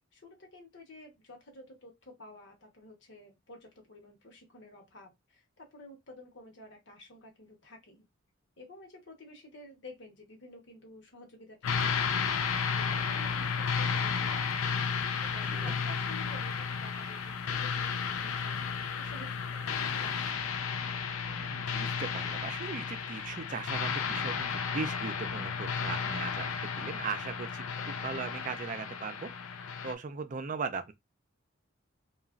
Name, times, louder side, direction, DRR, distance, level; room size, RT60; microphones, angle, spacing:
voice 1, 0.1-8.1 8.6-12.3 12.8-15.1 15.3-20.7, left 1 dB, 60° left, 1.0 m, -51 dB
sound 1, 11.6-29.9, left 6 dB, 75° left, 0.4 m, -33 dB
voice 2, 15.2-15.7 21.3-30.9, right 5 dB, 40° right, 0.4 m, -39 dB
2.9 x 2.4 x 2.4 m
head